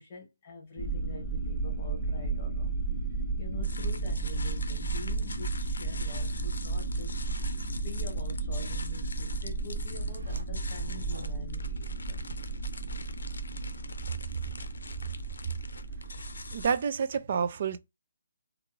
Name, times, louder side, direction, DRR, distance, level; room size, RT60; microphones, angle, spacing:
voice 1, 0.0-2.7 3.1-7.2 7.7-12.2, left 3 dB, 25° left, 1.3 m, -46 dB
sound 1, 0.8-16.7, right 3 dB, 5° left, 1.2 m, -33 dB
sound 2, 3.6-17.2, left 3 dB, 80° left, 0.5 m, -45 dB
sound 3, 10.0-10.4 10.8-13.3, right 1 dB, 85° right, 0.9 m, -48 dB
voice 2, 16.5-17.8, right 6 dB, 40° right, 0.3 m, -28 dB
3.3 x 2.4 x 3.1 m
hypercardioid pair, 170°, 0 cm